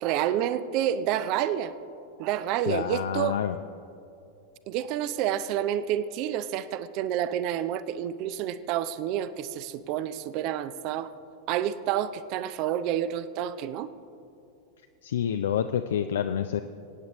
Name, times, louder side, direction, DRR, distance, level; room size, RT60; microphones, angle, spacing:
voice 1, 0.0-1.7 2.2-3.4 4.7-11.1 11.5-13.9, right 11 dB, 40° right, 15 dB, 0.4 m, -29 dB
voice 2, 2.7-3.6 15.0-16.6, left 9 dB, 60° left, 9 dB, 0.4 m, -28 dB
23.5 x 9.3 x 3.0 m, 2.6 s
figure-of-eight pair, 90°, 0 cm